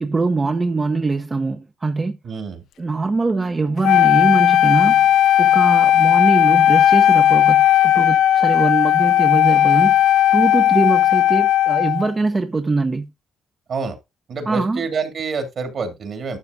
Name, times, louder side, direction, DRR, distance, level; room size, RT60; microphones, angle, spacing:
voice 1, 0.0-2.2 2.8-5.1 5.4-10.0 10.3-13.1 14.5-14.8, right 3 dB, 25° right, 0.7 m, -22 dB
voice 2, 2.2-2.6 13.7-14.0 14.3-16.4, right 5 dB, 60° right, 2.7 m, -27 dB
Wind instrument woodwind instrument, 3.8-12.1, left 11 dB, 75° left, 0.4 m, -15 dB
12.0 x 6.5 x 2.7 m
cardioid pair, 90°, 0 cm